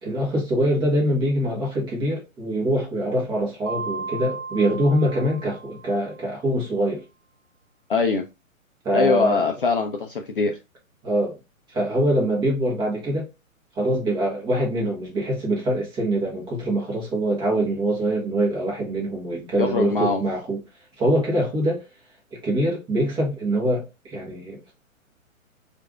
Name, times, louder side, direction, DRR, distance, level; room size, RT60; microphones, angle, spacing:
voice 1, 0.0-7.0 8.8-9.4 11.0-11.3 11.7-13.3 13.8-20.6 21.0-21.8 22.3-24.7, right 1 dB, 10° right, 0.9 m, -24 dB
Mallet percussion, 3.7-6.3, right 4 dB, 60° right, 0.6 m, -35 dB
voice 2, 7.9-8.2 8.9-10.5 19.6-20.2, left 4 dB, 40° left, 0.4 m, -22 dB
4.5 x 2.5 x 2.3 m
figure-of-eight pair, 125°, 42 cm